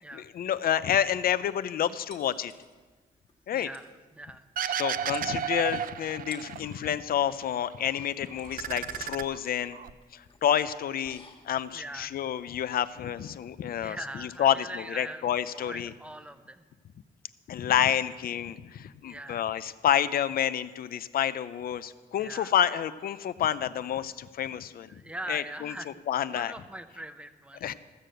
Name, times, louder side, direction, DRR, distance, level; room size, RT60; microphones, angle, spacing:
voice 1, 0.1-2.5 3.5-3.7 4.7-9.8 10.1-15.9 17.5-24.9 25.3-26.5 27.6-27.7, left 10 dB, 65° left, 15 dB, 0.5 m, -29 dB
sound 1, 2.1-3.0 3.3-3.4 3.6-3.9 4.8-4.9 5.1-5.8 6.2-6.6 7.8-14.4, left 3 dB, 30° left, 1.7 m, -53 dB
voice 2, 3.5-4.5 11.7-12.1 13.8-16.6 19.0-19.4 22.2-22.5 24.9-27.7, right 1 dB, 5° right, 9 dB, 0.7 m, -42 dB
sound 2, 4.6-6.9 7.2-8.1 8.4-9.9, right 9 dB, 60° right, 0.5 m, -33 dB
14.5 x 6.7 x 7.7 m, 1.3 s
cardioid pair, 125°, 16 cm